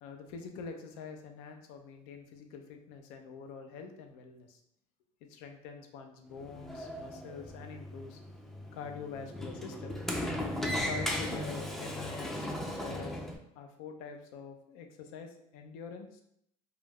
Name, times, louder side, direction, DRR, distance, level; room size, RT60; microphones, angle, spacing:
voice 1, 0.0-4.6 5.3-8.2 8.7-10.0 10.7-13.1 13.5-16.2, left 5 dB, 85° left, 5 dB, 0.5 m, -45 dB
Sliding door, 6.3-13.4, left 1 dB, ahead, 0.4 m, -37 dB
2.3 x 2.0 x 3.4 m, 0.73 s
supercardioid pair, 85°, 18 cm